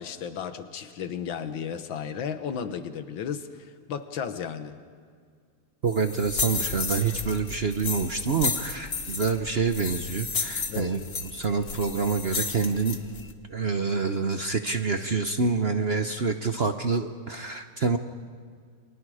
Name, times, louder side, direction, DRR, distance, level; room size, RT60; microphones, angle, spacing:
voice 1, 0.0-4.8 10.7-11.0, left 7 dB, 65° left, 10 dB, 1.9 m, -34 dB
voice 2, 5.8-13.0 13.5-18.0, right 4 dB, 60° right, 7 dB, 0.6 m, -27 dB
sound 1, 5.9-13.3, left 4 dB, 35° left, 1.2 m, -33 dB
30.0 x 25.0 x 4.9 m, 2.1 s
omnidirectional pair, 2.3 m